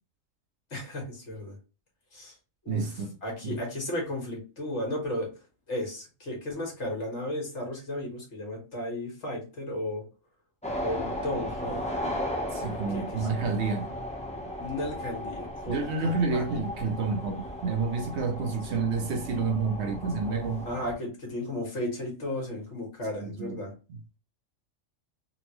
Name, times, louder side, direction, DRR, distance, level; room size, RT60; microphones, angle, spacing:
voice 1, 0.7-1.6 2.1-2.3 2.6-2.9 3.2-5.3 5.7-10.0 10.8-11.9 12.9-13.3 14.6-16.5 18.7-18.8 20.6-23.7, left 1 dB, 65° left, 1.7 m, -34 dB
voice 2, 2.7-3.1 3.4-3.6 12.5-13.9 15.7-20.7 23.2-23.6, right 4 dB, 65° right, 0.8 m, -29 dB
sound 1, 10.6-21.0, equal, 10° left, 0.5 m, -36 dB
3.9 x 2.2 x 2.9 m
omnidirectional pair, 1.3 m